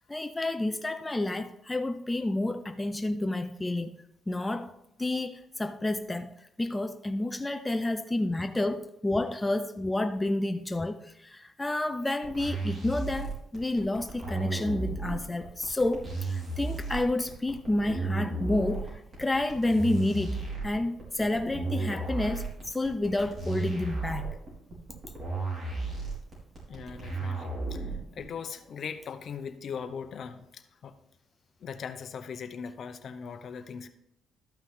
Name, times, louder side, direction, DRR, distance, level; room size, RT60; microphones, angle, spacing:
voice 1, 0.1-3.9 4.3-4.7 5.0-6.3 6.6-24.3, left 2 dB, 15° left, 0.5 m, -30 dB
sound 1, 12.2-28.2, right 3 dB, 40° right, 4.2 m, -34 dB
voice 2, 26.7-31.0 31.6-33.9, left 6 dB, 60° left, 0.8 m, -40 dB
12.5 x 5.9 x 3.7 m
cardioid pair, 90°, 0 cm